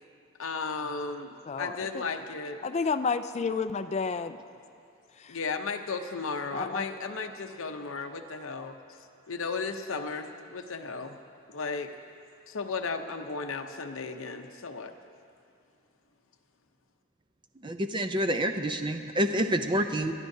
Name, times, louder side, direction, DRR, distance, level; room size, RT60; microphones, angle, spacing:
voice 1, 0.4-2.6 5.3-8.8 9.3-11.2 11.5-11.9 12.5-14.9, left 4 dB, 65° left, 6 dB, 0.7 m, -35 dB
voice 2, 1.5-2.0 2.6-4.4 5.2-5.4 6.5-6.9, left 4 dB, 30° left, 11 dB, 0.3 m, -30 dB
voice 3, 17.6-20.1, equal, 20° right, 7 dB, 0.5 m, -28 dB
23.0 x 12.5 x 2.7 m, 2.5 s
head